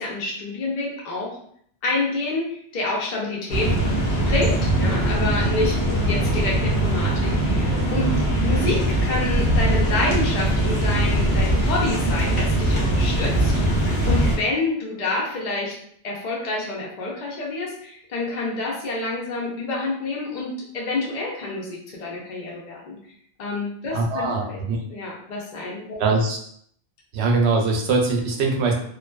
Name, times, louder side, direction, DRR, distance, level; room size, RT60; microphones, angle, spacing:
voice 1, 0.0-1.4 1.8-3.8 4.2-15.8 16.0-23.0 23.4-24.6 24.9-26.0, left 2 dB, 50° left, -3 dB, 0.7 m, -28 dB
sound 1, 3.5-14.4, right 1 dB, 85° left, 1.0 m, -21 dB
voice 2, 23.9-24.8 26.0-26.4 27.1-28.7, right 3 dB, 85° right, 1 dB, 0.8 m, -22 dB
2.5 x 2.2 x 2.2 m, 0.66 s
omnidirectional pair, 1.1 m